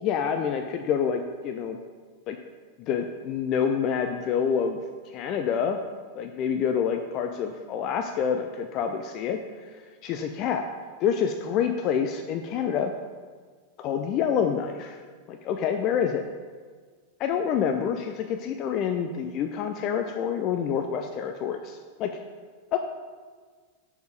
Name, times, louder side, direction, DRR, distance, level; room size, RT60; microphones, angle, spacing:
voice 1, 0.0-1.8 2.3-2.4 2.8-4.8 5.1-5.8 6.2-9.4 9.7-9.8 10.0-10.6 11.0-12.9 13.8-15.0 15.3-16.2 17.2-22.1 22.7-22.8, left 7 dB, 40° left, 5 dB, 0.4 m, -27 dB
6.1 x 5.0 x 5.1 m, 1.6 s
figure-of-eight pair, 90°, 0 cm